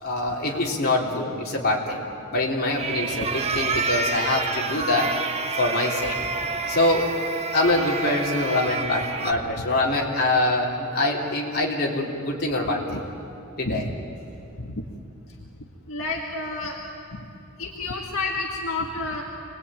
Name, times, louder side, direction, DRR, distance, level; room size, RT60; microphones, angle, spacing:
voice 1, 0.0-2.0 2.3-5.1 5.6-6.2 6.7-7.1 7.5-13.0 13.6-13.9, left 2 dB, 50° left, -2 dB, 3.7 m, -24 dB
sound 1, 2.8-9.3, right 3 dB, 30° right, 1.2 m, -28 dB
voice 2, 9.3-9.6 12.9-13.0 13.7-13.8 14.6-14.8 15.9-16.8 17.1-17.3 17.6-19.2, left 3 dB, 70° left, -1 dB, 1.9 m, -30 dB
27.5 x 20.5 x 9.1 m, 2.7 s
head